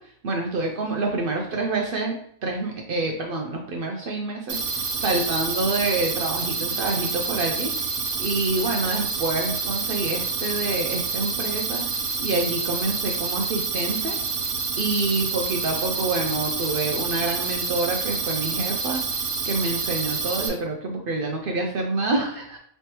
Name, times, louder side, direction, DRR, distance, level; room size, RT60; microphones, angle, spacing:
voice 1, 0.0-2.2 2.4-22.6, right 2 dB, 70° right, 1 dB, 0.5 m, -27 dB
sound 1, 4.5-20.5, right 4 dB, 85° right, 1.2 m, -28 dB
3.2 x 3.2 x 2.9 m, 0.67 s
omnidirectional pair, 1.5 m